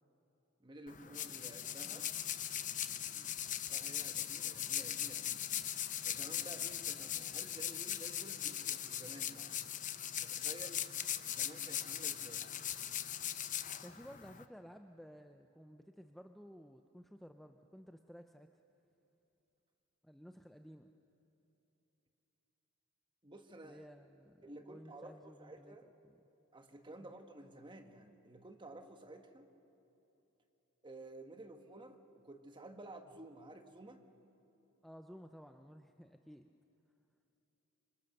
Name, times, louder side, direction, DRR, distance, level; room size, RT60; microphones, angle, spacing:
voice 1, 0.6-2.1 3.7-5.4 6.0-9.5 10.2-10.8 11.3-12.5 23.2-23.8 24.4-25.9 26.5-29.5 30.8-34.0, right 1 dB, 20° right, 6 dB, 1.3 m, -53 dB
sound 1, 0.9-14.4, left 10 dB, 35° left, 0.8 m, -40 dB
voice 2, 13.8-18.5 20.0-20.9 23.6-25.8 26.0-26.2 27.0-27.1 34.8-36.5, equal, ahead, 5 dB, 0.5 m, -55 dB
27.0 x 25.0 x 6.6 m, 3.0 s
head